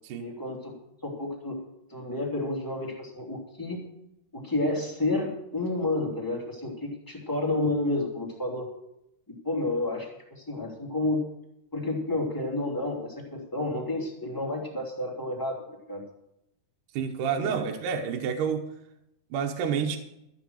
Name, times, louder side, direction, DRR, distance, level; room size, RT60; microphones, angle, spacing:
voice 1, 0.2-0.7 1.0-1.6 1.9-3.8 4.3-8.7 9.3-11.2 11.7-15.6 15.9-16.0 17.4-17.5, left 2 dB, 5° left, -2 dB, 2.5 m, -30 dB
voice 2, 16.9-18.6 19.3-20.0, right 7 dB, 80° right, 3 dB, 2.6 m, -29 dB
13.5 x 8.1 x 6.4 m, 0.82 s
omnidirectional pair, 3.7 m